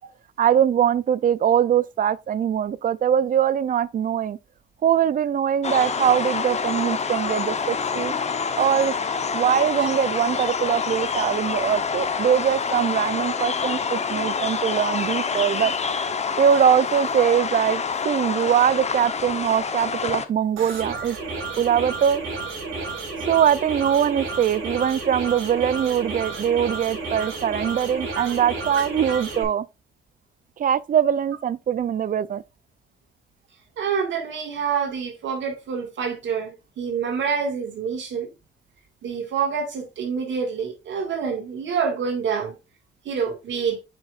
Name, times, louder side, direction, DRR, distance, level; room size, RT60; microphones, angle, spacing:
voice 1, 0.4-4.4 4.8-8.1 8.6-8.9 9.3-15.7 16.4-21.2 21.6-22.2 23.3-29.7 30.6-32.4, right 9 dB, 45° right, 0.5 m, -22 dB
sound 1, 5.6-20.3, left 5 dB, 35° left, 0.9 m, -27 dB
sound 2, 20.6-29.4, right 3 dB, 90° right, 2.5 m, -32 dB
voice 2, 28.8-29.2 33.8-38.3 39.0-42.5 43.1-43.8, right 6 dB, 70° right, 1.9 m, -27 dB
7.0 x 5.6 x 2.4 m
cardioid pair, 90°, 20 cm